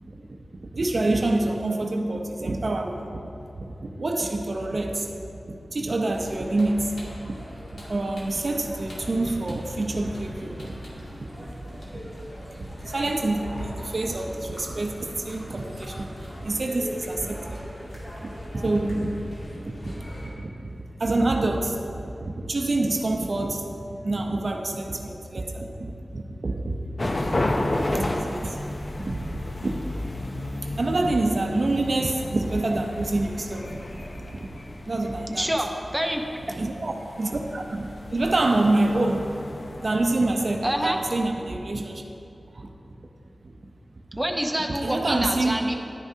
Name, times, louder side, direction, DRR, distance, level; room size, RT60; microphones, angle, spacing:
voice 1, 0.1-3.2 3.8-5.1 5.5-7.4 7.7-10.8 11.4-17.7 18.2-23.7 24.0-28.6 29.0-29.3 29.6-29.7 30.0-34.5 34.9-35.5 36.6-39.3 39.7-42.0 42.5-42.7 43.4-43.5 44.7-45.5, right 2 dB, 60° right, 3 dB, 0.7 m, -27 dB
sound 1, 6.1-20.3, equal, 65° left, 2.3 m, -41 dB
sound 2, 27.0-41.2, left 1 dB, 45° left, 0.6 m, -33 dB
voice 2, 35.3-36.6 40.6-41.0 44.2-45.7, right 1 dB, 10° right, 2 dB, 0.8 m, -27 dB
11.0 x 9.6 x 2.8 m, 2.6 s
wide cardioid pair, 65°, 0 cm